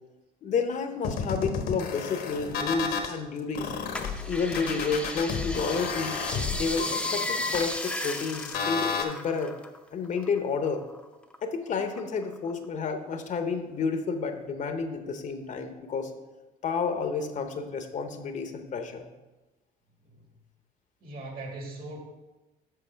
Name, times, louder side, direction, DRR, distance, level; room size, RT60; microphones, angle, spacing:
voice 1, 0.4-3.7 4.3-6.2 6.5-9.5 9.9-10.9 11.4-16.1 16.6-19.0, left 5 dB, 50° left, 7 dB, 0.8 m, -30 dB
sound 1, 1.0-3.1 3.5-9.0, left 6 dB, 70° left, 1.1 m, -32 dB
sound 2, 3.9-9.8 10.1-11.4 11.8-12.6 13.1-13.2, left 1 dB, 5° left, 0.6 m, -35 dB
voice 2, 21.0-22.0, right 2 dB, 60° right, 1 dB, 2.0 m, -39 dB
7.8 x 5.9 x 4.5 m, 1.1 s
cardioid pair, 110°, 17 cm